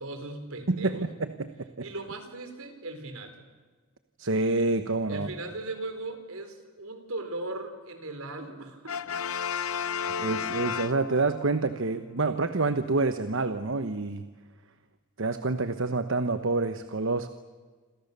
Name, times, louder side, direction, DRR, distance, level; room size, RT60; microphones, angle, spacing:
voice 1, 0.0-1.1 1.8-3.4 5.1-9.0 10.2-10.3, right 2 dB, 80° right, 7 dB, 4.4 m, -38 dB
voice 2, 0.7-1.9 4.2-5.3 9.9-14.2 15.2-17.3, right 3 dB, 65° right, 10 dB, 1.1 m, -28 dB
Brass instrument, 8.9-11.5, left 7 dB, 85° left, 0.8 m, -32 dB
27.5 x 27.5 x 6.9 m, 1.4 s
head